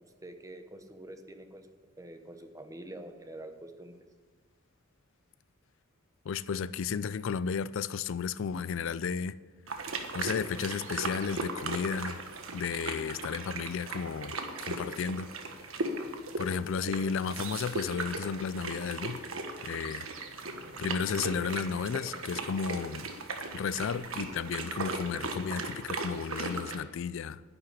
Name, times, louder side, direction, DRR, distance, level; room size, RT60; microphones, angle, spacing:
voice 1, 0.2-4.0, right 1 dB, 15° right, 1.1 m, -46 dB
voice 2, 6.3-9.3 10.1-12.2 12.5-15.3 16.4-19.2 19.6-20.1 20.8-23.1 23.5-27.4, left 6 dB, 65° left, 0.4 m, -33 dB
sound 1, 9.7-26.8, right 3 dB, 80° right, 1.5 m, -38 dB
10.5 x 7.8 x 9.9 m
head